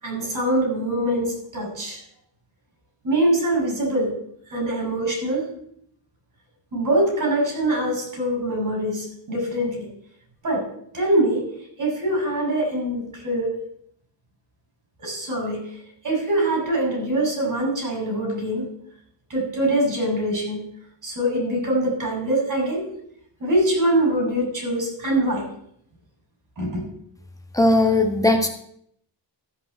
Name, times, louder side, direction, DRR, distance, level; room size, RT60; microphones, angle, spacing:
voice 1, 0.0-2.0 3.0-4.1 4.5-5.5 6.7-9.9 10.4-10.7 10.9-11.4 11.8-13.5 15.0-18.7 19.3-20.6 21.0-22.8 23.4-25.4 26.6-26.8, right 1 dB, 45° right, 0 dB, 6.6 m, -23 dB
voice 2, 27.5-28.5, left 2 dB, 10° left, 4 dB, 1.7 m, -18 dB
13.5 x 5.5 x 7.8 m, 0.69 s
wide cardioid pair, 130°, 45 cm